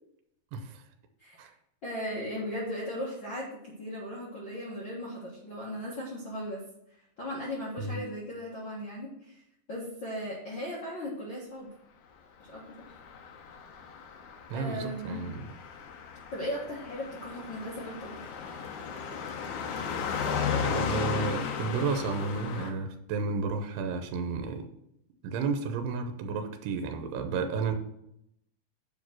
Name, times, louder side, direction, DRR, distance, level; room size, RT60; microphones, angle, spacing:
voice 1, 0.5-0.8 1.4-1.5 7.8-8.0 14.5-15.5 20.6-24.7 25.2-27.8, right 4 dB, 85° right, 6 dB, 2.9 m, -32 dB
voice 2, 1.8-6.6 6.9-9.4 9.7-11.7 12.5-12.6 14.5-15.2 16.3-18.3, equal, 50° left, -6 dB, 1.5 m, -37 dB
Car passing by, 12.8-22.7, left 6 dB, 75° left, 1.9 m, -35 dB
7.4 x 5.2 x 6.1 m, 0.77 s
omnidirectional pair, 4.6 m